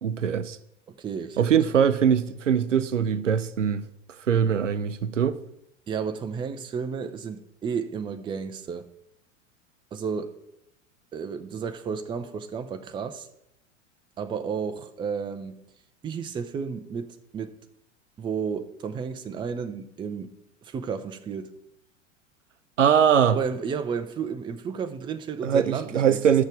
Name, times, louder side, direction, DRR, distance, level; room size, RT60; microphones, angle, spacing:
voice 1, 0.0-0.6 1.4-3.9 4.3-5.4 22.8-23.4 25.4-26.4, right 8 dB, 75° right, 0.7 m, -22 dB
voice 2, 0.9-1.6 5.9-8.9 9.9-10.4 11.1-13.3 14.2-15.6 16.0-17.6 18.2-20.3 20.6-21.5 23.3-26.2, right 6 dB, 15° right, 0.5 m, -32 dB
12.0 x 6.5 x 4.8 m
figure-of-eight pair, 85°, 37 cm